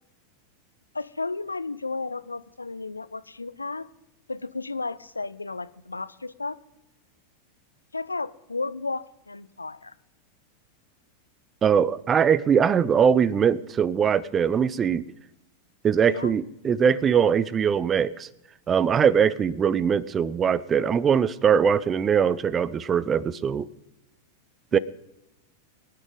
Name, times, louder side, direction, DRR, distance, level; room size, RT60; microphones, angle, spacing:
voice 1, 0.9-3.9 4.3-6.6 7.9-9.9 16.0-16.3 24.7-24.8, left 3 dB, 80° left, 16 dB, 0.5 m, -33 dB
voice 2, 11.6-15.0 15.8-18.3 18.7-23.7 24.7-24.8, right 7 dB, 25° right, 21 dB, 0.5 m, -21 dB
23.5 x 9.9 x 3.8 m, 0.91 s
figure-of-eight pair, 90°, 0 cm